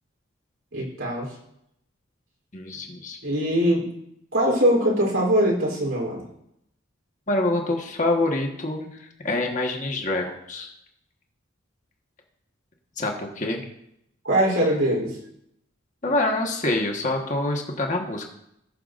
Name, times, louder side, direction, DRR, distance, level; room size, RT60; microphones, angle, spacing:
voice 1, 0.7-1.3 3.2-3.9 4.3-6.2 14.2-15.2, equal, 80° right, -2 dB, 3.6 m, -22 dB
voice 2, 2.5-3.2 7.3-10.7 13.0-13.6 16.0-18.3, left 2 dB, 35° left, 1 dB, 1.4 m, -26 dB
19.5 x 6.8 x 2.6 m, 0.78 s
head